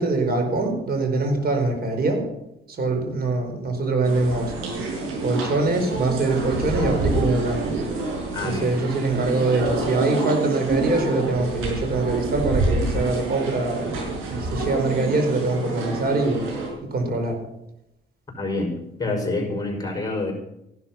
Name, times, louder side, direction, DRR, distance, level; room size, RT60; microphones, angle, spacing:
voice 1, 0.0-2.2 2.7-4.5 5.2-7.7 8.4-16.5 16.9-17.4, right 3 dB, 50° right, 4 dB, 4.7 m, -23 dB
sound 1, 4.0-16.7, right 2 dB, 90° right, 6.1 m, -27 dB
voice 2, 8.3-8.8 18.3-20.3, left 2 dB, 20° left, 2 dB, 5.3 m, -27 dB
15.0 x 12.0 x 5.8 m, 0.86 s
cardioid pair, 90°, 20 cm